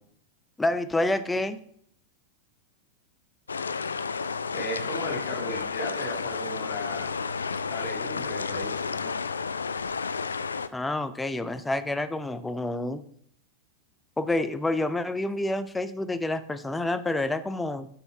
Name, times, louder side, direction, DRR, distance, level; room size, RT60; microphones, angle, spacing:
voice 1, 0.6-1.6 10.7-13.0 14.2-17.9, left 2 dB, 10° left, 12 dB, 0.5 m, -28 dB
sound 1, 3.5-10.7, left 5 dB, 75° left, 0.3 m, -31 dB
voice 2, 4.5-7.1 7.7-9.1, left 1 dB, 40° left, 1 dB, 2.0 m, -35 dB
6.6 x 6.1 x 3.5 m, 0.64 s
figure-of-eight pair, 90°, 0 cm